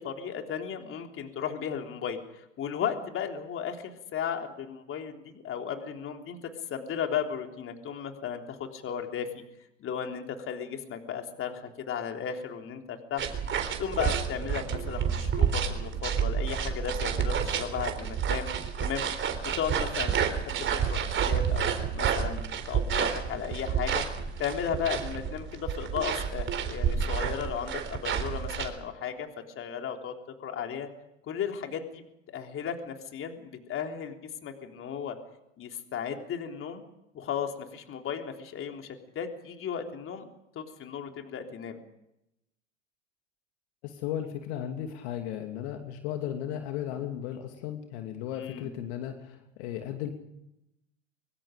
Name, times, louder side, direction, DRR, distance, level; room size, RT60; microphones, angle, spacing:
voice 1, 0.0-6.4 6.7-9.4 9.8-13.3 13.5-18.5 18.8-19.0 19.5-24.1 24.4-29.3 29.6-30.1 30.4-30.9 31.3-35.2 35.6-36.8 37.1-40.3 40.6-41.8 48.3-48.7, left 8 dB, 35° left, 4 dB, 3.6 m, -35 dB
sound 1, 13.2-28.7, right 7 dB, 30° right, 3.8 m, -30 dB
voice 2, 43.8-50.1, left 10 dB, 55° left, 5 dB, 2.8 m, -35 dB
24.5 x 24.0 x 5.2 m, 0.85 s
hypercardioid pair, 90°, 38 cm